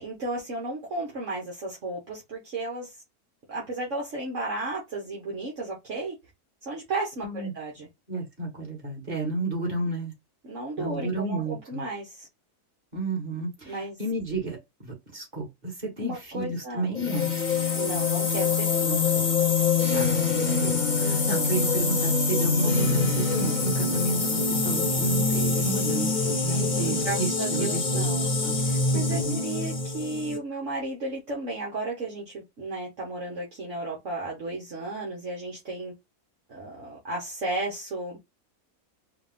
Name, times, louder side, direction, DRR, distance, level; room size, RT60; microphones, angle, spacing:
voice 1, 0.0-2.9 3.5-6.1 6.6-7.9 10.4-12.3 13.6-14.0 16.0-16.9 17.7-19.3 21.0-21.5 26.5-28.3 28.6-35.9 36.5-38.2, right 2 dB, 55° right, 1.5 m, -34 dB
voice 2, 8.1-10.1 10.8-11.8 12.9-17.4 18.9-19.0 19.9-28.1 28.4-28.6 28.9-29.4, right 2 dB, 30° right, 2.2 m, -31 dB
sound 1, 16.9-30.4, left 4 dB, 35° left, 1.2 m, -25 dB
4.7 x 2.5 x 3.5 m
omnidirectional pair, 1.6 m